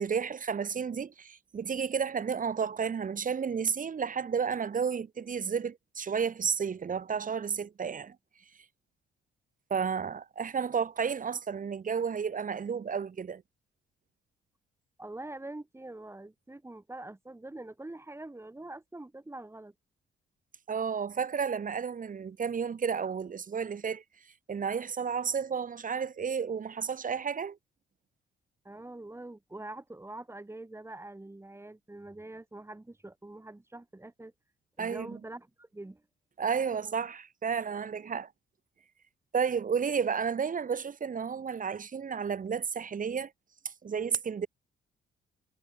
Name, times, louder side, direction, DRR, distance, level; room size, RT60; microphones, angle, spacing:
voice 1, 0.0-8.2 9.7-13.4 20.7-24.0 24.5-27.6 34.8-35.2 36.4-38.3 39.3-43.3 43.6-44.5, right 6 dB, 40° right, 3.2 m, -32 dB
voice 2, 15.0-19.7 28.6-34.3 34.8-36.0, right 2 dB, 15° right, 7.6 m, -44 dB
cardioid pair, 90°, 20 cm